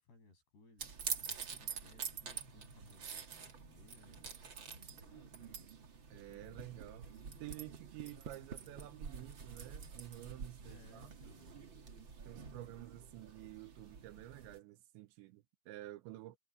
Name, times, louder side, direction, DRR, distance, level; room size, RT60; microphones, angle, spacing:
voice 1, 0.0-5.7 6.1-7.5 10.6-12.2, left 2 dB, 60° left, 9.7 m, -64 dB
sound 1, 0.8-14.6, right 6 dB, 55° right, 1.3 m, -47 dB
voice 2, 6.1-7.1 7.4-11.1 12.3-16.4, right 16 dB, 80° right, 3.1 m, -51 dB
omnidirectional pair, 5.4 m